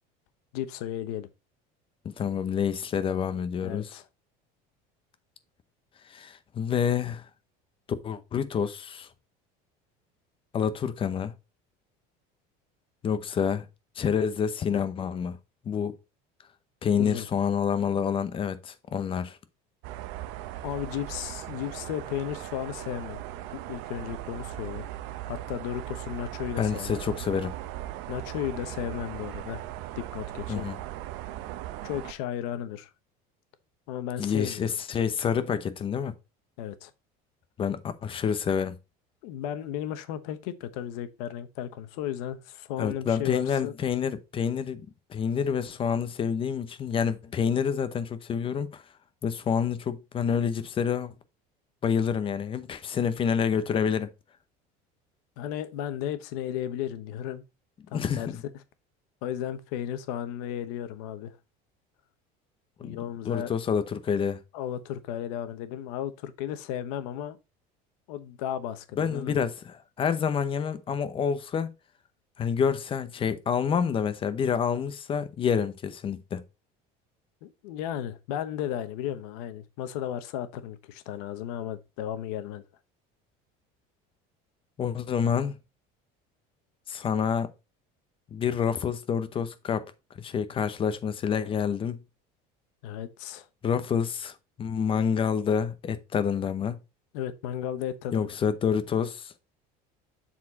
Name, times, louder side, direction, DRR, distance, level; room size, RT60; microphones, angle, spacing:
voice 1, 0.5-1.3 3.6-4.0 17.0-17.3 20.6-23.2 23.5-24.9 25.3-27.0 28.1-29.6 30.0-30.7 31.8-32.9 33.9-34.6 36.6-36.9 39.2-43.7 55.4-57.4 57.9-58.3 59.2-61.3 62.8-63.5 64.5-67.4 68.1-69.4 77.4-82.6 92.8-93.5 97.1-98.3, left 10 dB, 85° left, 1.0 m, -34 dB
voice 2, 2.0-4.0 6.1-7.3 8.0-9.1 10.5-11.3 13.0-13.6 14.0-15.4 15.6-15.9 16.8-19.4 26.6-27.5 30.5-30.8 34.2-36.1 37.6-38.7 42.8-48.8 49.2-51.1 51.8-54.1 57.9-58.4 62.8-63.0 63.2-64.4 69.0-71.7 72.4-76.4 84.8-85.6 86.9-87.5 88.3-89.8 90.2-92.0 93.6-96.8 98.1-99.3, left 7 dB, 30° left, 0.8 m, -28 dB
sound 1, 19.8-32.1, right 14 dB, 70° right, 0.7 m, -38 dB
7.3 x 4.3 x 4.1 m
cardioid pair, 145°, 19 cm